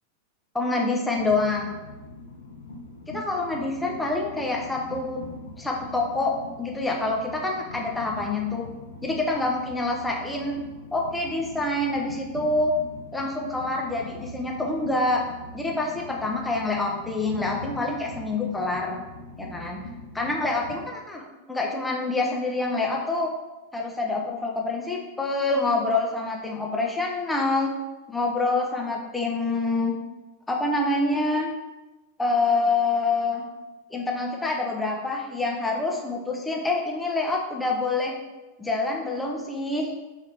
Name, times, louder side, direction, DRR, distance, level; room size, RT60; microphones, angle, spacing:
voice 1, 0.5-1.8 3.1-5.2 5.6-8.7 9.0-10.6 10.9-12.7 13.1-15.2 15.5-19.0 19.4-19.8 20.1-23.3 23.7-27.7 28.1-30.0 30.5-31.5 32.2-33.5 33.9-38.1 38.6-39.9, left 2 dB, 5° left, -1 dB, 0.7 m, -26 dB
Train, 1.2-20.9, left 2 dB, 65° left, 0.5 m, -42 dB
4.3 x 2.9 x 3.5 m, 1.1 s
figure-of-eight pair, 90°, 0 cm